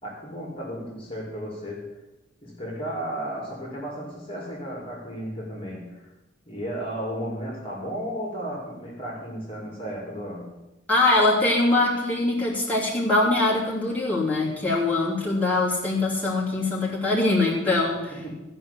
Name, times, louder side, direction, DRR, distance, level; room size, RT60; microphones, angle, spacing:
voice 1, 0.0-1.9 2.4-6.1 6.5-10.4 18.2-18.3, equal, 30° left, -3 dB, 2.6 m, -34 dB
voice 2, 10.9-18.3, left 2 dB, 10° left, -7 dB, 3.0 m, -23 dB
14.5 x 5.6 x 8.2 m, 1.1 s
head